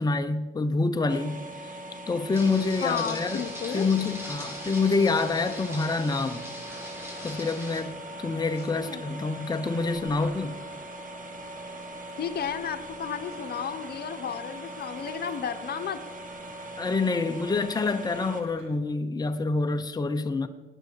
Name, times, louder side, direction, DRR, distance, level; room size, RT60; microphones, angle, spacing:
voice 1, 0.0-1.4 2.1-3.4 3.7-6.4 7.2-7.9 8.2-10.6 16.8-20.5, left 3 dB, 20° left, 8 dB, 0.9 m, -27 dB
sound 1, 1.1-18.4, equal, 40° right, 1.9 m, -41 dB
sound 2, 2.3-7.8, equal, 10° right, 5.7 m, -40 dB
voice 2, 2.8-3.9 8.8-9.0 12.2-16.0, left 7 dB, 50° left, 8 dB, 1.2 m, -33 dB
Domestic sounds home sounds, 2.9-6.2 6.7-18.7, right 3 dB, 90° right, 3.6 m, -50 dB
18.5 x 9.7 x 4.8 m, 1.3 s
cardioid pair, 90°, 20 cm